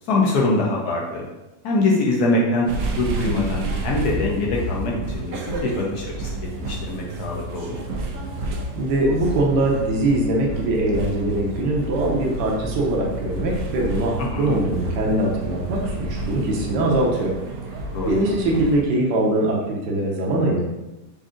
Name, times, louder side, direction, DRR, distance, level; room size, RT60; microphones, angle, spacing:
voice 1, 0.1-1.2 1.6-2.7 3.0-6.4 6.7-7.8 14.3-14.6 17.9-18.2, left 2 dB, 70° left, -2 dB, 0.9 m, -23 dB
sound 1, 2.7-18.8, right 1 dB, 90° right, 1.6 m, -30 dB
voice 2, 8.8-17.3 18.0-20.7, right 1 dB, 65° right, -2 dB, 1.2 m, -22 dB
4.9 x 2.6 x 3.7 m, 1.0 s
omnidirectional pair, 2.4 m